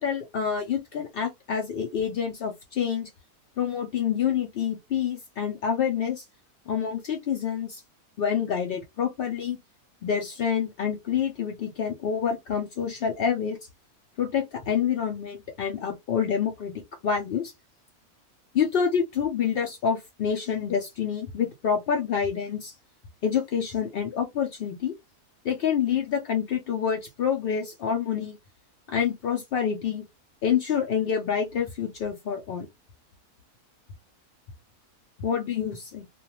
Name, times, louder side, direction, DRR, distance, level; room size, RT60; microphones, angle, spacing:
voice 1, 0.0-3.1 3.6-6.2 6.7-7.8 8.2-9.6 10.0-13.6 14.2-16.7 17.0-17.5 18.5-22.7 23.2-24.9 25.4-28.4 28.9-30.0 30.4-32.7 35.2-36.1, left 7 dB, 80° left, 0.5 m, -27 dB
2.5 x 2.2 x 2.9 m
omnidirectional pair, 1.6 m